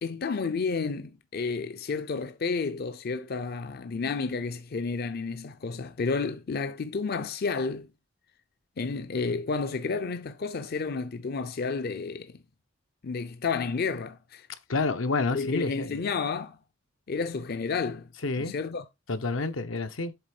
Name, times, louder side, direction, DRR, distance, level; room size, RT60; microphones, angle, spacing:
voice 1, 0.0-7.9 8.8-12.4 13.0-14.5 15.3-16.6 17.1-18.1 18.4-18.9, left 4 dB, 50° left, 0.5 m, -31 dB
voice 2, 14.7-16.1 18.2-18.6 19.1-20.1, left 3 dB, 80° left, 0.8 m, -29 dB
7.9 x 3.5 x 4.8 m
head